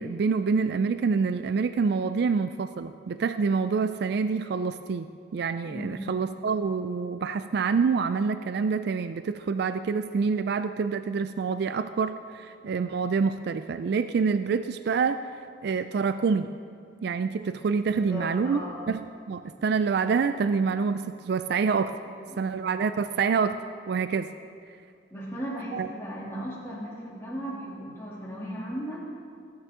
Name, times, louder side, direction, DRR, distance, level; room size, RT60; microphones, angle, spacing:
voice 1, 0.0-15.2 15.6-16.5 17.0-21.9 22.4-23.6 23.9-24.3 25.7-25.9, right 5 dB, 60° right, 11 dB, 0.3 m, -27 dB
voice 2, 5.7-6.1 17.9-18.8 22.2-22.6 25.1-29.1, equal, 15° left, -6 dB, 2.7 m, -36 dB
19.5 x 9.3 x 3.7 m, 2.2 s
head